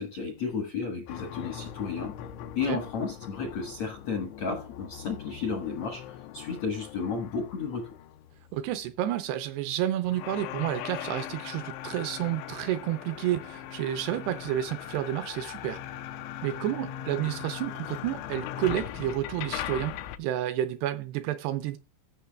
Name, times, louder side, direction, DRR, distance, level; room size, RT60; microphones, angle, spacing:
voice 1, 0.0-2.1 2.5-7.9, left 5 dB, 70° left, 1.6 m, -33 dB
sound 1, 1.1-9.0 10.0-20.2, left 11 dB, 85° left, 3.0 m, -40 dB
voice 2, 8.5-15.8 16.4-21.8, right 12 dB, 85° right, 2.3 m, -30 dB
14.5 x 5.7 x 3.4 m
omnidirectional pair, 5.3 m